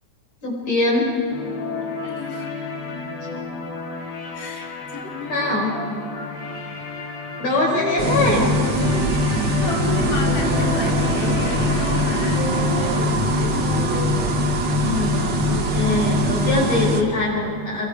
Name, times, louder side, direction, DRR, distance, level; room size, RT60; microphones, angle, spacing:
voice 1, 0.4-1.1 5.3-5.8 7.4-8.5 14.8-17.9, left 2 dB, 60° left, -3 dB, 7.4 m, -22 dB
sound 1, 1.3-13.0, left 3 dB, 35° left, 3.3 m, -31 dB
voice 2, 2.0-2.5 4.3-5.5 9.6-14.2, left 3 dB, 90° left, -1 dB, 4.6 m, -32 dB
sound 2, 8.0-17.0, equal, 45° right, 1.7 m, -21 dB
29.5 x 24.0 x 4.8 m, 2.5 s
omnidirectional pair, 3.5 m